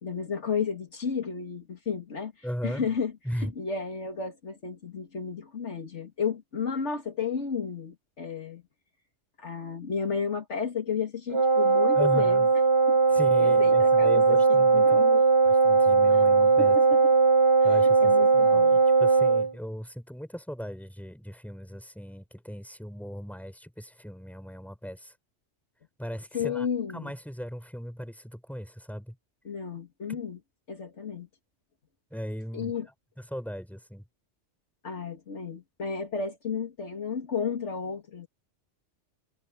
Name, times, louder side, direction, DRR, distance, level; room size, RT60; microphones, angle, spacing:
voice 1, 0.0-2.3 2.6-3.1 3.4-8.6 9.4-12.5 12.9-13.0 13.4-15.2 16.6-17.1 17.7-18.8 26.3-27.1 29.4-30.4 30.7-31.3 32.5-32.9 34.8-38.3, left 6 dB, 70° left, 2.3 m, -33 dB
voice 2, 2.4-2.9 3.2-3.5 11.9-12.5 13.1-15.0 15.4-16.8 17.6-25.1 26.0-26.7 26.9-29.2 30.1-30.2 32.1-32.8 33.3-34.0, equal, ahead, 6.4 m, -37 dB
Wind instrument woodwind instrument, 11.3-19.5, right 4 dB, 25° right, 1.2 m, -20 dB
omnidirectional pair, 1.2 m